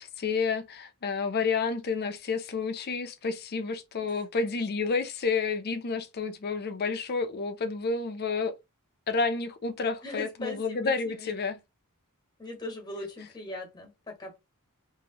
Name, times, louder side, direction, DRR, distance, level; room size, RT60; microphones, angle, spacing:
voice 1, 0.0-8.5 9.1-11.6, left 4 dB, 45° left, 0.5 m, -30 dB
voice 2, 10.0-11.3 12.4-14.4, left 1 dB, 20° left, 1.2 m, -40 dB
3.0 x 2.6 x 2.8 m
head